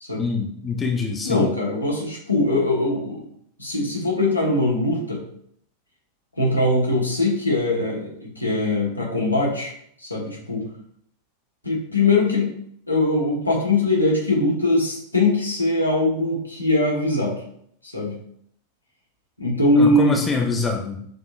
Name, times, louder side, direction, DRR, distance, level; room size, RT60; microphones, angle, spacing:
voice 1, 0.2-1.5 19.8-21.0, left 4 dB, 20° left, 2 dB, 0.6 m, -25 dB
voice 2, 1.2-3.2 3.6-5.2 6.4-9.7 10.0-10.6 11.6-12.5 12.9-17.4 17.8-18.2 19.4-20.2, left 2 dB, 85° left, -2 dB, 1.1 m, -21 dB
6.3 x 2.8 x 2.4 m, 0.67 s
figure-of-eight pair, 90°, 0 cm